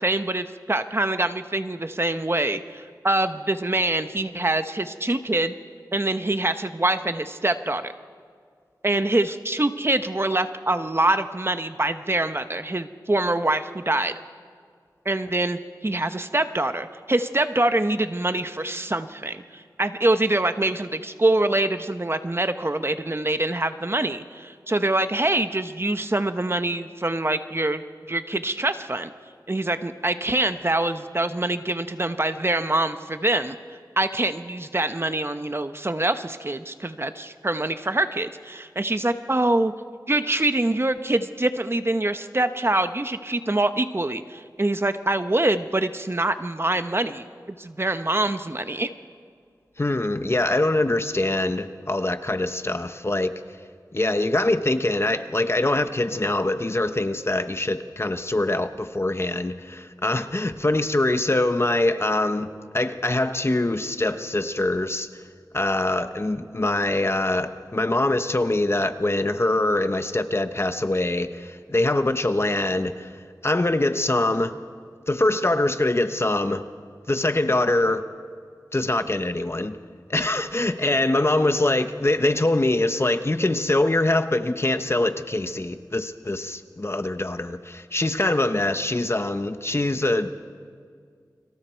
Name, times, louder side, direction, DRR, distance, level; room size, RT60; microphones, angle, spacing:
voice 1, 0.0-5.5 5.9-7.9 8.8-14.2 15.0-27.8 28.1-29.1 29.5-33.6 34.0-39.7 40.1-47.2 47.6-48.9, right 2 dB, 35° right, 9 dB, 1.0 m, -24 dB
voice 2, 49.8-53.4 53.9-65.1 65.5-73.1 73.4-74.6 75.1-76.7 77.1-78.1 78.7-79.8 80.1-90.3, left 2 dB, 35° left, 9 dB, 1.0 m, -23 dB
30.0 x 25.0 x 4.6 m, 2.1 s
wide cardioid pair, 65°, 7 cm